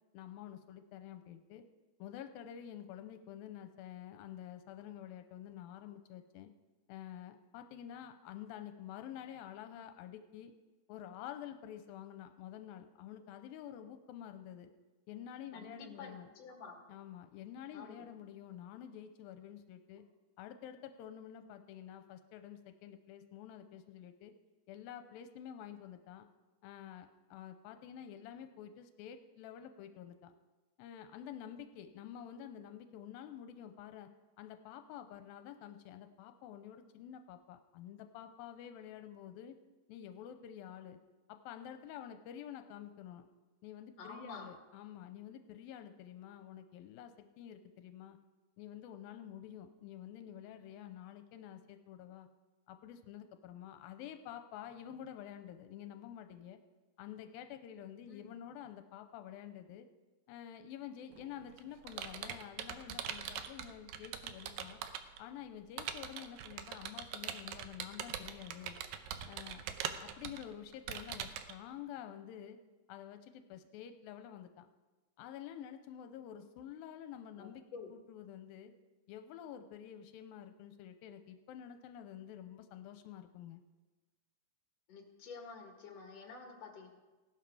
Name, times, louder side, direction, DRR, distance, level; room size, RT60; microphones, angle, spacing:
voice 1, 0.1-1.6 2.0-6.5 6.9-10.5 10.9-14.7 15.1-16.3 16.9-20.0 20.4-24.3 24.7-26.3 26.6-30.3 30.8-34.1 34.4-39.6 39.9-41.0 41.3-43.3 43.6-48.2 48.6-52.3 52.7-56.6 57.0-59.9 60.3-64.8 65.2-68.8 69.3-69.6 70.0-72.6 72.9-74.7 75.2-77.6 77.9-78.7 79.1-83.6, left 10 dB, 90° left, 8 dB, 2.5 m, -49 dB
voice 2, 15.5-16.8 17.7-18.1 44.0-44.5 58.1-58.3 77.4-77.9 84.9-86.9, left 4 dB, 50° left, 2 dB, 2.8 m, -49 dB
Computer keyboard, 61.1-65.2 65.8-71.5, right 9 dB, 80° right, 2.5 m, -42 dB
16.5 x 12.0 x 4.8 m, 1.2 s
omnidirectional pair, 4.2 m